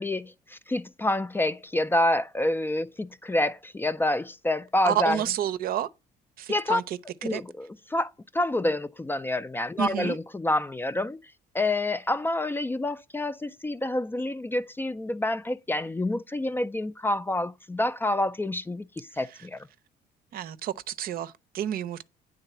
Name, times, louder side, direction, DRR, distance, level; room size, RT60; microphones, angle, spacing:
voice 1, 0.0-5.2 6.5-6.8 7.2-11.2 11.5-19.6, left 1 dB, 10° left, 0.4 m, -28 dB
voice 2, 4.8-5.9 6.4-7.4 9.8-10.2 20.3-22.0, right 10 dB, 60° right, 0.6 m, -30 dB
9.1 x 3.8 x 6.7 m
cardioid pair, 110°, 17 cm